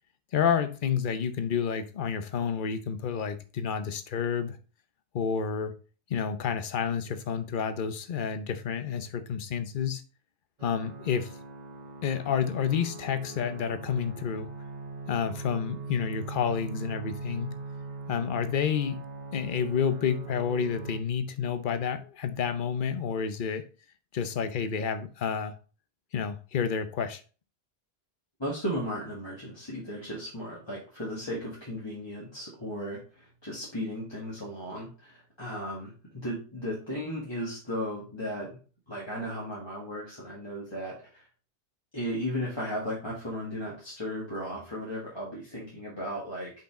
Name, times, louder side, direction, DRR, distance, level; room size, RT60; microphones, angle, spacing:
voice 1, 0.3-4.6 5.1-5.7 6.1-10.0 10.6-11.3 12.0-14.5 15.1-17.6 18.1-19.0 19.3-23.6 24.1-25.5 26.1-27.2, left 7 dB, 50° left, 0.9 m, -29 dB
sound 1, 10.6-21.0, right 4 dB, 40° right, 1.1 m, -41 dB
voice 2, 28.4-38.6 38.9-41.2 41.9-46.5, equal, 25° left, 1.7 m, -35 dB
5.6 x 5.2 x 3.7 m
omnidirectional pair, 1.2 m